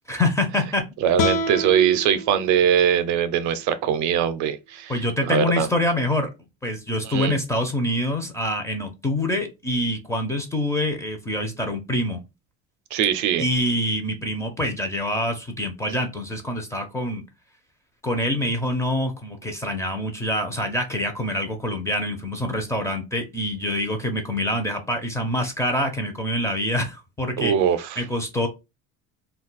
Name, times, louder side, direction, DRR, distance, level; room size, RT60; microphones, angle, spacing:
voice 1, 0.1-0.9 4.9-6.3 6.6-12.2 13.4-17.2 18.0-27.5 28.0-28.5, left 1 dB, 10° left, 0.5 m, -25 dB
voice 2, 1.0-5.7 7.0-7.4 12.9-13.5 27.4-28.0, right 9 dB, 65° right, 0.5 m, -22 dB
sound 1, 1.2-4.3, left 2 dB, 65° left, 0.5 m, -30 dB
2.4 x 2.2 x 3.9 m
cardioid pair, 150°, 31 cm